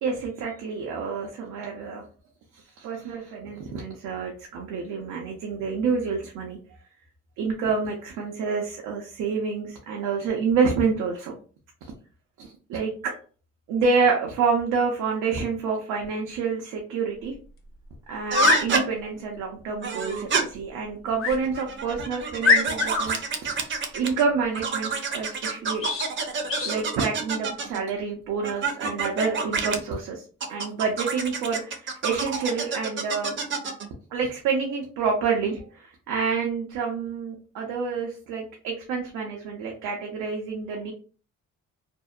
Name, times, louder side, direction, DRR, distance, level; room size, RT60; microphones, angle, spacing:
voice 1, 0.0-2.0 2.5-6.6 7.4-11.4 12.4-13.1 13.7-17.3 18.1-23.5 23.9-25.9 26.6-30.2 30.5-33.4 34.1-40.9, right 5 dB, 90° right, -1 dB, 0.6 m, -28 dB
sound 1, 17.3-17.4 18.2-18.7 21.2-21.4 21.9-22.0 22.4-23.1 25.8-26.1 26.5-26.8, left 4 dB, 45° left, 0.6 m, -22 dB
sound 2, 18.3-18.8 19.8-20.4 21.4-24.2 24.5-27.8 28.4-29.8 30.4-33.9, right 5 dB, 40° right, 0.5 m, -28 dB
2.6 x 2.0 x 2.3 m, 0.39 s
cardioid pair, 90°, 30 cm